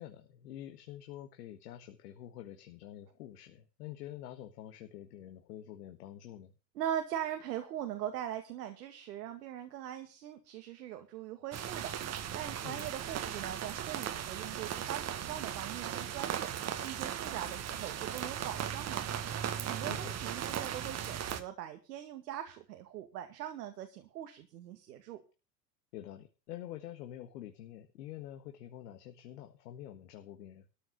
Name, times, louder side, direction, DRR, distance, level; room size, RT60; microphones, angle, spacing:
voice 1, 0.0-6.5 12.6-12.9 19.8-20.2 25.9-30.7, left 12 dB, 65° left, 6 dB, 1.7 m, -47 dB
voice 2, 6.7-12.0 12.3-16.5 16.8-19.1 19.7-25.2, right 11 dB, 70° right, 6 dB, 2.2 m, -41 dB
sound 1, 11.5-21.4, right 9 dB, 30° right, 1.6 m, -37 dB
14.0 x 6.3 x 8.4 m, 0.33 s
hypercardioid pair, 95°, 50 cm